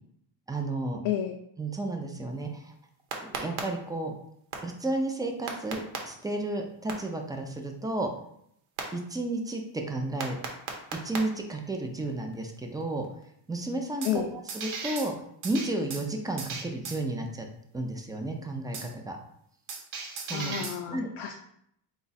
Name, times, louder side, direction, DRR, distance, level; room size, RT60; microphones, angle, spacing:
voice 1, 0.5-1.0 1.6-2.7 3.2-4.1 4.6-8.1 8.9-9.6 9.9-10.4 10.9-13.0 13.5-14.2 14.5-15.1 15.4-17.5 17.7-19.2 20.1-20.5 20.9-21.1, right 2 dB, 10° right, 3 dB, 0.3 m, -32 dB
voice 2, 1.0-1.4 14.0-14.3 20.3-21.3, left 10 dB, 85° left, 2 dB, 0.6 m, -31 dB
sound 1, 3.1-3.6 4.5-4.6 5.5-6.0 6.9-7.0 8.8-8.9 10.2-11.2 14.0-14.2 14.5-15.1 15.4-16.1 16.4-17.0 18.7-18.9 19.7-20.8, right 6 dB, 85° right, 1.0 m, -35 dB
4.0 x 2.3 x 4.0 m, 0.72 s
cardioid pair, 115°, 48 cm